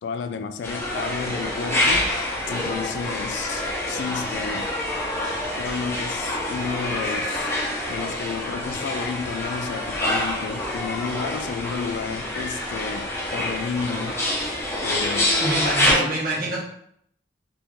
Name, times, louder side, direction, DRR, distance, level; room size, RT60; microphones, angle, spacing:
voice 1, 0.0-4.7 5.6-7.5 7.9-15.4 15.8-16.2, left 5 dB, 75° left, 0.3 m, -32 dB
sound 1, 0.6-15.9, left 1 dB, 15° left, 0.8 m, -26 dB
voice 2, 15.4-16.6, right 1 dB, 55° right, 1.0 m, -26 dB
2.9 x 2.5 x 3.5 m
head